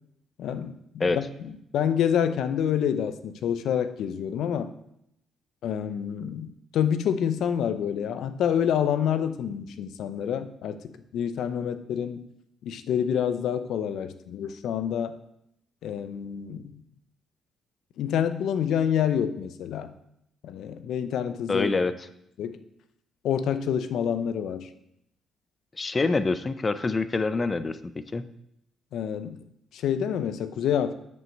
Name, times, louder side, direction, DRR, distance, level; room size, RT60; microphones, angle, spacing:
voice 1, 0.4-4.7 5.6-10.8 11.1-12.2 12.6-15.1 15.8-16.8 18.0-19.9 20.4-21.7 22.4-22.6 23.2-24.7 28.9-29.4 29.7-30.9, left 8 dB, 75° left, 11 dB, 0.6 m, -27 dB
voice 2, 21.5-21.9 25.8-28.2, left 3 dB, 25° left, 12 dB, 0.6 m, -26 dB
7.7 x 5.4 x 6.5 m, 0.78 s
cardioid pair, 105°, 0 cm